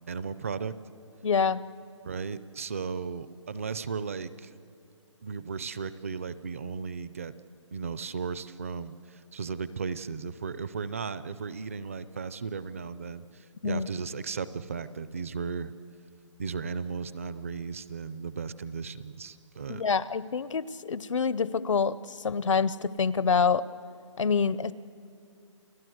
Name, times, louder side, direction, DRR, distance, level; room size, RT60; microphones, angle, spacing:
voice 1, 0.1-0.8 2.0-4.5 5.2-7.3 7.7-15.7 16.4-19.8, right 5 dB, 25° right, 16 dB, 0.5 m, -35 dB
voice 2, 1.2-1.6 13.6-13.9 19.7-23.6 24.2-24.7, left 5 dB, 80° left, 18 dB, 0.8 m, -26 dB
29.5 x 18.0 x 7.9 m, 2.5 s
hypercardioid pair, 175°, 16 cm